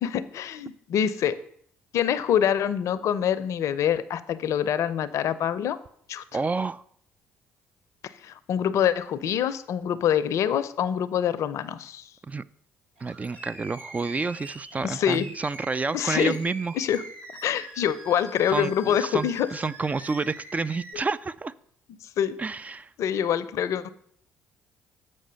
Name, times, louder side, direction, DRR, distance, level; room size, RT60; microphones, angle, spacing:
voice 1, 0.0-1.4 1.9-5.8 6.1-6.2 8.2-12.0 14.8-15.3 15.9-16.4 16.8-17.0 17.4-19.5 22.2-22.4 23.0-23.9, left 9 dB, 60° left, 15 dB, 0.6 m, -25 dB
voice 2, 6.3-6.8 12.3-12.4 13.0-16.7 18.5-21.5 22.4-22.9, right 4 dB, 25° right, 15 dB, 0.4 m, -29 dB
Animal, 13.0-20.9, right 2 dB, 85° right, 1.3 m, -44 dB
7.7 x 5.4 x 6.3 m, 0.65 s
hypercardioid pair, 50°, 6 cm